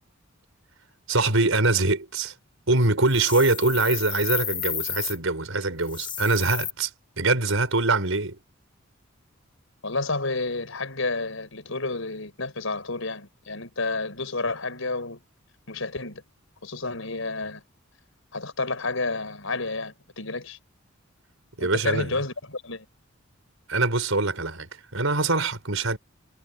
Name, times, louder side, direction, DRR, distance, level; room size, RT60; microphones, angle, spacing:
voice 1, 1.1-2.3 2.7-6.9 7.2-8.4 21.6-22.1 23.7-26.0, right 3 dB, 75° right, 4.8 m, -23 dB
sound 1, 3.1-5.2 5.8-6.7, left 9 dB, 25° left, 0.9 m, -32 dB
voice 2, 9.8-15.2 15.7-16.2 16.6-17.6 18.3-20.6 21.6-22.8, left 3 dB, 75° left, 5.0 m, -30 dB
head